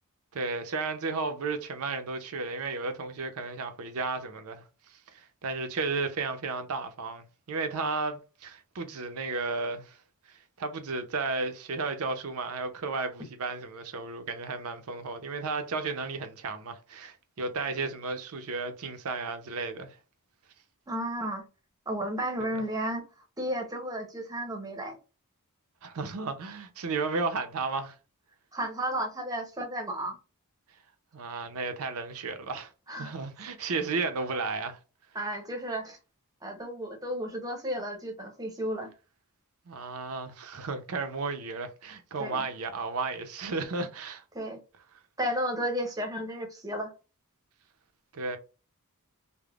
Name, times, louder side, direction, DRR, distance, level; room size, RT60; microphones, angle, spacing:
voice 1, 0.3-10.0 10.3-20.0 25.8-28.0 31.1-34.8 39.7-44.2 48.1-48.4, right 3 dB, 70° right, 0.6 m, -33 dB
voice 2, 20.9-21.4 21.9-23.1 23.4-25.0 28.5-30.2 32.9-33.1 33.6-33.7 35.1-36.0 36.4-38.9 42.2-42.5 44.3-44.6 45.2-46.9, equal, 15° right, 0.7 m, -33 dB
3.4 x 2.1 x 2.3 m
head